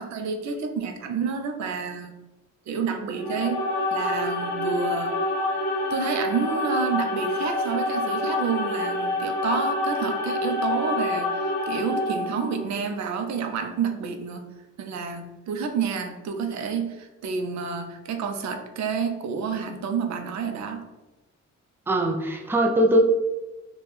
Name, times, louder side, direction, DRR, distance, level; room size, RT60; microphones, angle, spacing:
voice 1, 0.0-2.1 2.7-3.6 3.9-5.2 5.9-14.4 14.8-20.8, right 6 dB, 65° right, 6 dB, 0.6 m, -29 dB
sound 1, 3.1-12.6, left 2 dB, 15° left, 1.5 m, -27 dB
voice 2, 21.9-23.0, right 1 dB, 10° right, 2 dB, 0.4 m, -21 dB
3.3 x 2.3 x 4.1 m, 1.1 s
cardioid pair, 125°, 30 cm